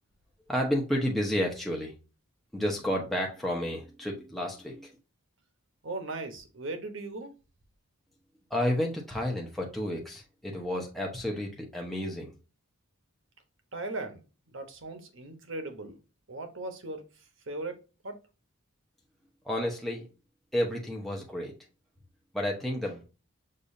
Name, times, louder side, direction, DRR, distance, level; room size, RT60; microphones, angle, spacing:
voice 1, 0.5-1.9 2.5-4.9 8.5-12.3 19.4-20.0 20.5-21.5 22.3-23.0, equal, ahead, 0.9 m, -31 dB
voice 2, 5.8-7.3 13.7-14.2 14.5-16.0 16.3-17.0 17.5-18.2, right 2 dB, 60° right, 1.1 m, -38 dB
6.6 x 2.7 x 2.6 m
head